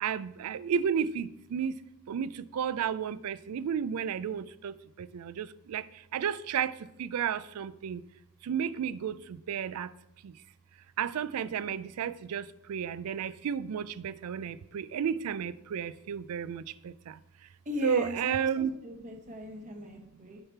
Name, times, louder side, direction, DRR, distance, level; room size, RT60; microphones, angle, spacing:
voice 1, 0.0-1.7 2.1-4.7 5.1-5.8 6.1-6.7 7.0-8.0 8.5-9.9 11.0-16.6 17.8-18.7, right 7 dB, 75° right, 0.4 m, -32 dB
voice 2, 17.6-20.4, left 1 dB, 35° right, 1.1 m, -38 dB
6.7 x 5.6 x 4.5 m
head